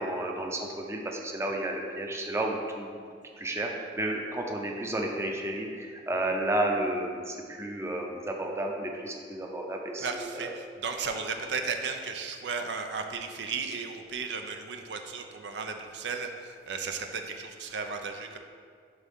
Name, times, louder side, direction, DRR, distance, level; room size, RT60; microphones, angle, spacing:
voice 1, 0.0-2.9 3.4-10.5, right 1 dB, 15° right, 1 dB, 0.6 m, -32 dB
voice 2, 10.0-18.4, right 5 dB, 75° right, 5 dB, 0.5 m, -35 dB
11.0 x 3.6 x 3.6 m, 2.1 s
head